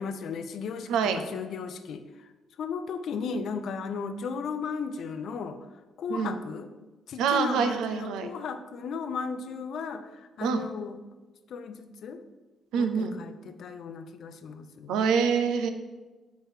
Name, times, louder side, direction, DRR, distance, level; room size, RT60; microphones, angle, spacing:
voice 1, 0.0-2.3 2.6-5.6 6.0-6.7 7.1-11.0 11.5-12.2 12.7-14.9, left 5 dB, 70° left, 9 dB, 0.5 m, -35 dB
voice 2, 0.9-1.2 6.1-6.4 7.2-8.3 10.4-10.6 12.7-13.1 14.9-15.7, right 6 dB, 90° right, 8 dB, 0.5 m, -25 dB
4.7 x 4.6 x 4.9 m, 1.2 s
cardioid pair, 90°, 0 cm